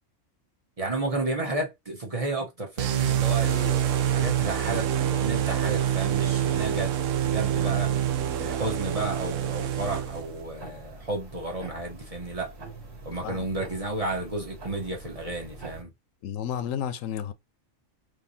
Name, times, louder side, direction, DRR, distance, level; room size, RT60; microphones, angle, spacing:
voice 1, 0.8-7.9 8.4-12.5 13.0-15.9, right 2 dB, 30° right, 1.1 m, -32 dB
sound 1, 2.8-10.4, right 10 dB, 75° right, 1.0 m, -26 dB
sound 2, 5.8-15.8, right 2 dB, 55° right, 1.5 m, -45 dB
voice 2, 16.2-17.3, left 9 dB, 85° left, 1.0 m, -32 dB
3.8 x 3.2 x 2.7 m
omnidirectional pair, 1.3 m